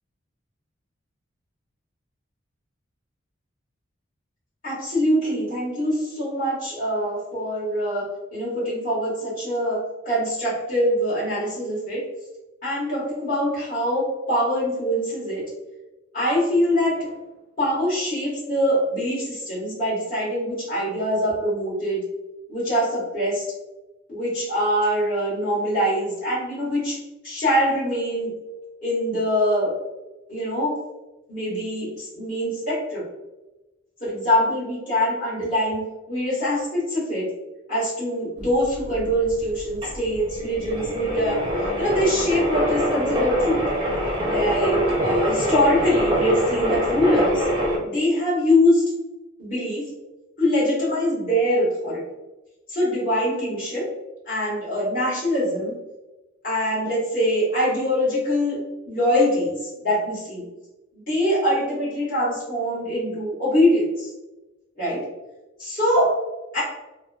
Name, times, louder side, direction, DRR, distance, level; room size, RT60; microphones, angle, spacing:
voice 1, 4.6-8.0 8.3-9.8 10.0-12.0 12.6-15.4 16.1-17.1 17.6-22.0 22.5-23.4 24.1-27.0 27.2-28.3 28.8-29.7 30.3-30.8 31.3-33.0 34.0-37.3 37.7-41.4 41.8-43.6 44.2-47.4 47.8-48.8 49.4-49.9 50.4-52.0 52.7-53.9 54.3-55.8 56.4-60.4 60.9-64.1 64.8-65.0 65.6-66.1 66.5-66.6, equal, 40° left, -8 dB, 1.4 m, -23 dB
sound 1, 38.4-47.8, equal, 25° right, 0.5 m, -24 dB
3.3 x 2.1 x 2.3 m, 1.1 s
head